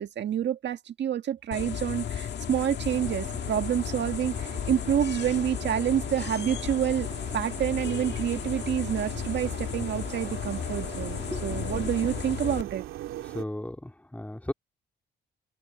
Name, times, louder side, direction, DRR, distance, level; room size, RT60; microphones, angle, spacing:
voice 1, 0.0-12.8, right 10 dB, 65° right, 1.7 m, -28 dB
sound 1, 1.5-12.6, left 9 dB, 60° left, 1.6 m, -34 dB
sound 2, 2.9-13.4, right 13 dB, 90° right, 3.1 m, -42 dB
voice 2, 13.3-14.5, left 1 dB, 5° left, 2.1 m, -35 dB
open air
cardioid pair, 90°, 20 cm